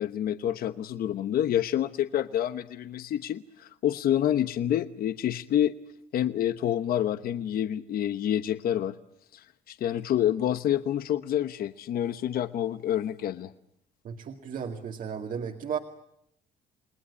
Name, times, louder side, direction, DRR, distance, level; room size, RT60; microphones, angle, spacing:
voice 1, 0.0-5.7 6.1-8.9 9.3-13.5, left 11 dB, 65° left, 11 dB, 1.0 m, -28 dB
voice 2, 14.0-15.8, right 7 dB, 55° right, 3 dB, 2.2 m, -34 dB
29.0 x 20.0 x 9.7 m, 0.76 s
cardioid pair, 120°, 16 cm